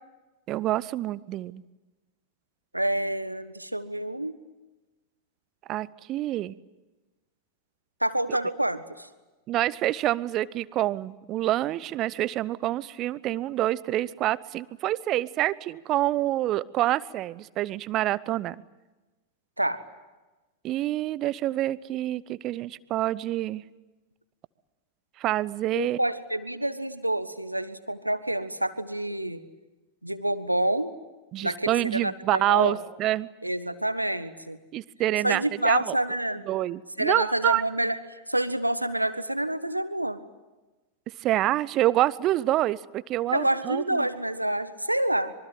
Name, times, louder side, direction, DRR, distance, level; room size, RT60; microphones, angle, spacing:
voice 1, 0.5-1.6 5.7-6.6 9.5-18.6 20.6-23.6 25.2-26.0 31.3-33.3 34.7-36.0 36.5-37.6 41.2-44.0, right 14 dB, 35° right, 20 dB, 0.9 m, -27 dB
voice 2, 2.7-4.4 8.0-9.1 19.6-19.8 25.7-29.4 30.0-30.9 31.4-32.8 33.4-34.6 35.2-36.4 37.0-40.2 43.3-45.3, right 1 dB, 85° right, 12 dB, 1.5 m, -28 dB
25.5 x 23.5 x 9.2 m, 1.1 s
figure-of-eight pair, 90°, 0 cm